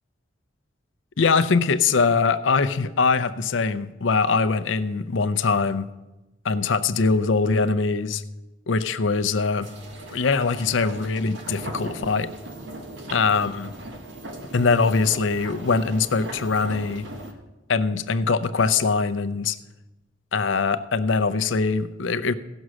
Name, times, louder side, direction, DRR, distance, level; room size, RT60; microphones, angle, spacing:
voice 1, 1.2-5.9 6.4-8.2 8.7-9.7 10.1-12.3 13.1-13.8 14.5-17.1 17.7-19.6 20.3-22.3, left 4 dB, 85° left, 12 dB, 0.6 m, -22 dB
sound 1, 9.6-17.3, right 1 dB, 75° right, 1.4 m, -39 dB
16.0 x 6.1 x 6.3 m, 1.1 s
head